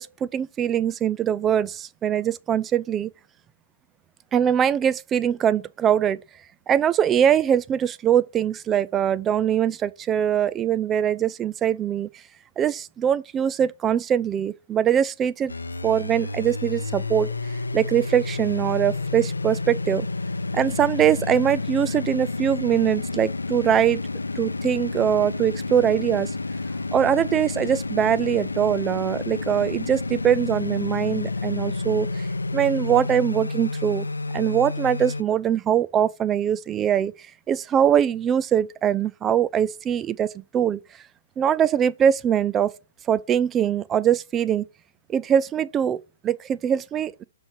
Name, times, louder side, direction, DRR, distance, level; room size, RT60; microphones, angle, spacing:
voice 1, 0.0-3.1 4.3-6.2 6.7-12.1 12.6-15.5 15.8-17.3 17.7-20.1 20.5-24.0 24.4-26.3 26.9-32.3 32.5-34.1 34.3-37.1 37.5-40.8 41.4-42.7 43.1-44.6 45.1-47.2, right 9 dB, 20° right, 0.3 m, -22 dB
sound 1, 15.5-35.2, left 3 dB, 90° left, 0.6 m, -30 dB
6.2 x 5.9 x 4.7 m
hypercardioid pair, 125°, 0 cm